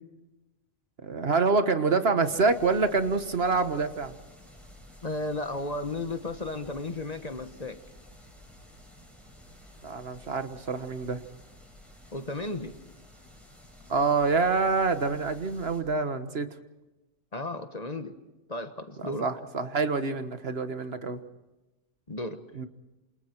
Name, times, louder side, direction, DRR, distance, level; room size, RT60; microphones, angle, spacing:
voice 1, 1.0-4.1 9.8-11.2 13.9-16.5 19.0-21.2 22.5-22.7, right 4 dB, 55° right, 9 dB, 1.5 m, -26 dB
sound 1, 2.2-15.8, left 1 dB, ahead, 6.2 m, -52 dB
voice 2, 5.0-7.8 12.1-12.8 17.3-18.1 18.5-19.3 22.1-22.4, left 2 dB, 35° left, 8 dB, 1.4 m, -34 dB
27.5 x 27.5 x 4.5 m, 1.0 s
omnidirectional pair, 1.2 m